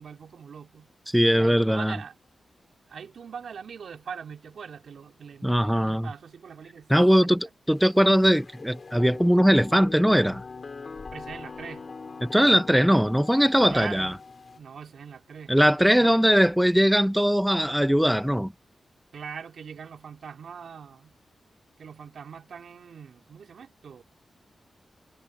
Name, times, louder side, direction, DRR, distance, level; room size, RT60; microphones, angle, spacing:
voice 1, 0.0-0.9 1.3-2.2 2.9-6.9 11.1-11.9 13.7-14.2 14.6-15.5 16.0-16.2 19.1-21.2 21.8-24.0, right 6 dB, 70° right, 3.3 m, -41 dB
voice 2, 1.1-1.9 5.4-6.1 6.9-10.4 12.2-14.1 15.5-18.5, equal, ahead, 0.7 m, -20 dB
sound 1, 7.7-14.6, left 4 dB, 40° left, 3.3 m, -42 dB
wide cardioid pair, 165°, 0 cm